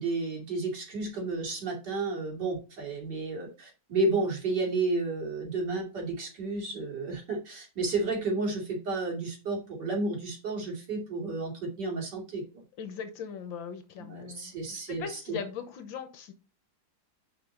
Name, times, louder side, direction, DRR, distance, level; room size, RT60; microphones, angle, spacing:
voice 1, 0.0-12.6 14.0-15.4, right 3 dB, 55° right, -2 dB, 3.1 m, -32 dB
voice 2, 12.8-16.3, left 7 dB, 70° left, 9 dB, 1.7 m, -40 dB
6.8 x 5.1 x 3.8 m, 0.32 s
omnidirectional pair, 2.2 m